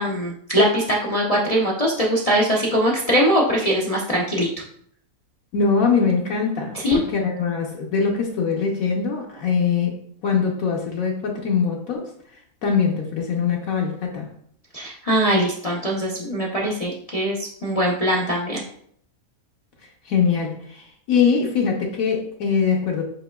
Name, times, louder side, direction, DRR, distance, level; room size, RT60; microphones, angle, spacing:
voice 1, 0.0-4.5 6.8-7.0 14.7-18.6, equal, 50° left, -4 dB, 0.4 m, -21 dB
voice 2, 5.5-12.1 12.6-14.3 20.0-23.0, left 5 dB, 70° left, -1 dB, 1.1 m, -22 dB
7.6 x 3.0 x 2.2 m, 0.65 s
omnidirectional pair, 1.6 m